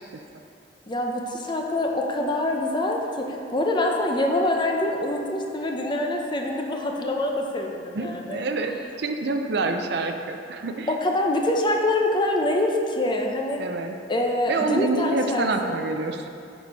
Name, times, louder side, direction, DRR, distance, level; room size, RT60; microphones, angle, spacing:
voice 1, 0.9-8.4 10.9-13.6 14.1-15.8, left 1 dB, 25° left, 1 dB, 0.7 m, -25 dB
voice 2, 8.0-10.9 13.6-13.9 14.5-16.3, right 3 dB, 65° right, 5 dB, 0.5 m, -27 dB
9.1 x 4.3 x 5.2 m, 2.5 s
head